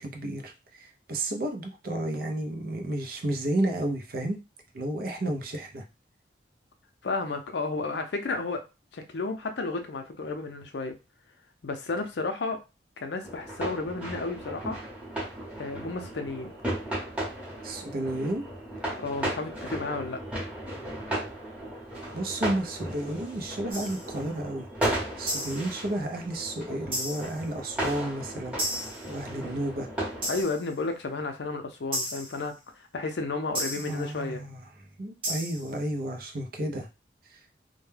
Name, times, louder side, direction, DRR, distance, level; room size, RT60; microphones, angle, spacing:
voice 1, 0.0-4.4 4.7-5.8 17.6-18.4 22.1-24.7 25.2-29.9 33.8-34.6 35.0-36.9 37.3-37.4, right 1 dB, 55° right, 0.5 m, -32 dB
voice 2, 7.0-8.6 8.9-11.0 11.6-12.6 13.0-14.8 15.6-16.5 19.0-20.2 30.3-32.6 32.9-34.4, left 3 dB, 75° left, 0.5 m, -32 dB
sound 1, 13.2-30.4, right 1 dB, 10° right, 0.9 m, -35 dB
sound 2, 23.7-24.1 25.3-25.8 26.9-27.4 28.6-29.1 30.2-30.7 31.9-32.4 33.5-34.0 35.2-35.8, equal, 30° right, 0.9 m, -33 dB
2.2 x 2.1 x 3.2 m
head